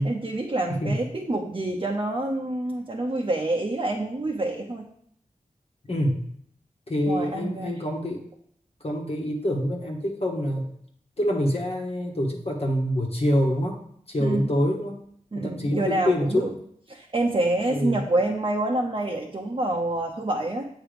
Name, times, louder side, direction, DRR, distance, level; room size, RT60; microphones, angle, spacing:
voice 1, 0.0-4.9 7.1-7.8 14.2-14.5 15.3-16.5 16.9-20.7, right 2 dB, 40° right, -1 dB, 0.8 m, -27 dB
voice 2, 5.9-6.2 6.9-8.2 8.8-10.7 11.2-13.8 14.1-15.0 15.3-16.5 17.7-18.0, equal, 45° left, -1 dB, 1.3 m, -26 dB
7.6 x 3.1 x 5.1 m, 0.66 s
cardioid pair, 45°, 14 cm